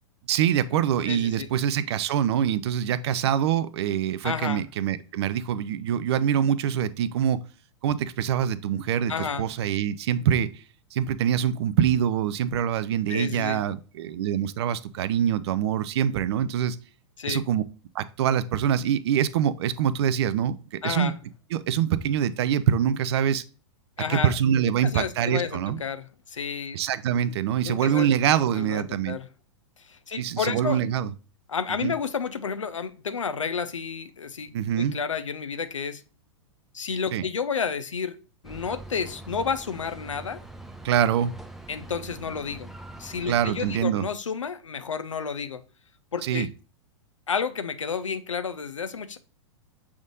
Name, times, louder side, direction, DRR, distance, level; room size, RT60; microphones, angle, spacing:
voice 1, 0.3-7.4 7.8-10.5 10.9-16.8 17.3-17.6 17.9-20.6 20.8-21.1 21.5-23.4 24.1-25.8 26.7-29.2 30.2-31.1 31.8-31.9 34.5-34.9 37.1-37.2 40.8-41.3 43.3-44.1 46.2-46.5, right 9 dB, 60° right, 15 dB, 0.5 m, -24 dB
voice 2, 1.1-1.5 4.2-4.6 9.1-9.5 13.1-13.6 17.2-17.4 20.8-21.1 24.0-24.3 24.8-26.8 27.6-28.1 28.6-29.3 29.8-30.8 31.5-36.0 36.7-38.2 38.4-40.4 41.7-42.7 43.0-45.6 46.1-46.5 47.3-49.2, left 6 dB, 85° left, 11 dB, 0.6 m, -31 dB
sound 1, 38.4-43.8, right 2 dB, ahead, 0.5 m, -43 dB
6.2 x 3.6 x 2.4 m, 0.36 s
hypercardioid pair, 105°, 16 cm